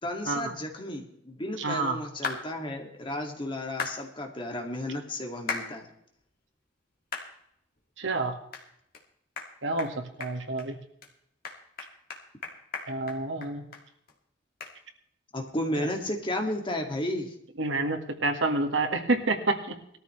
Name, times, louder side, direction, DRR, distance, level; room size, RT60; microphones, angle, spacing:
voice 1, 0.0-5.9 15.3-17.3, left 1 dB, 25° left, 2 dB, 2.4 m, -33 dB
voice 2, 1.6-2.0 8.0-8.4 9.6-10.8 12.9-13.6 17.6-19.8, right 2 dB, 90° right, 4 dB, 1.9 m, -28 dB
sound 1, 2.2-2.4 3.8-4.0 5.5-5.7 6.2-6.3 7.1-7.3 7.8-7.9 8.5-8.6 8.9-9.0 9.4-9.5 9.8-9.9 10.2-10.7 11.0-11.1 11.4-13.8 14.1-14.2 14.6-14.7, left 5 dB, 50° left, 2.4 m, -35 dB
19.5 x 13.5 x 3.3 m, 0.73 s
head